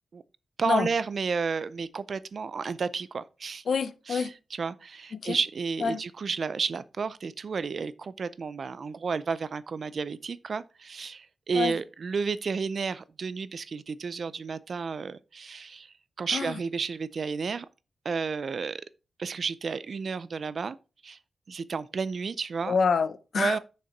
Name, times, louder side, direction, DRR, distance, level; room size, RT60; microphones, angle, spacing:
voice 1, 0.6-3.6 4.1-4.3 4.6-17.7 18.0-18.8 19.2-20.8 21.0-21.2 21.5-22.8 23.4-23.6, right 5 dB, 50° right, 0.5 m, -32 dB
voice 2, 3.7-4.3 5.1-5.4 5.8-6.0 11.5-11.8 16.3-16.6 22.7-23.6, left 5 dB, 60° left, 0.6 m, -27 dB
6.7 x 6.5 x 4.5 m
wide cardioid pair, 180°, 0 cm